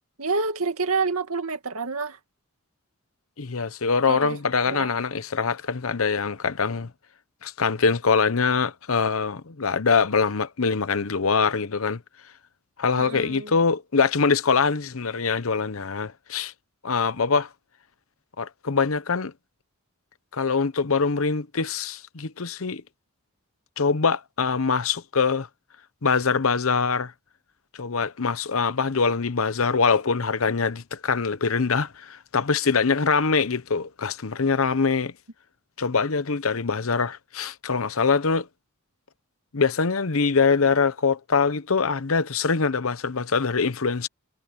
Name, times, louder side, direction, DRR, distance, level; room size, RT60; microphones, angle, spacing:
voice 1, 0.2-2.2 4.1-4.4 4.7-4.9 13.0-13.5, right 4 dB, 85° right, 2.3 m, -28 dB
voice 2, 3.4-6.9 7.4-12.0 12.8-16.5 16.8-17.5 18.4-19.3 20.3-22.8 23.8-25.5 26.0-27.1 27.7-35.1 35.8-38.5 39.5-44.1, left 5 dB, 75° left, 0.9 m, -23 dB
head